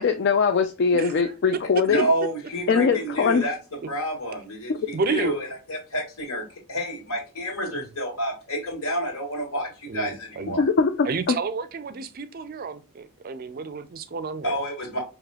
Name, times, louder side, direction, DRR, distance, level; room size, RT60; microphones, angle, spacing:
voice 1, 0.0-2.1 2.7-3.5 4.7-4.8 10.6-11.4, left 5 dB, 50° left, 0.3 m, -21 dB
voice 2, 0.9-1.3 4.9-5.4 7.7-7.8 9.9-10.6 11.0-14.6, right 4 dB, 40° right, 0.4 m, -31 dB
voice 3, 1.9-10.7 14.4-15.0, equal, 80° left, 2.0 m, -29 dB
4.9 x 2.9 x 2.3 m
head